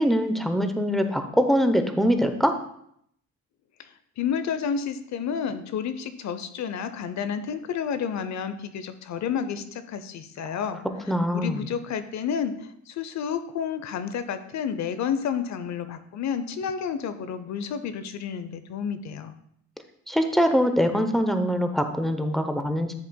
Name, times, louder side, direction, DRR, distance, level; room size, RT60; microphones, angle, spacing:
voice 1, 0.0-2.6 11.1-11.7 20.1-22.9, equal, ahead, 6 dB, 0.8 m, -23 dB
voice 2, 4.2-10.8 11.3-12.5 12.9-19.4, left 7 dB, 65° left, 11 dB, 0.7 m, -30 dB
10.5 x 7.4 x 2.3 m, 0.70 s
cardioid pair, 90°, 30 cm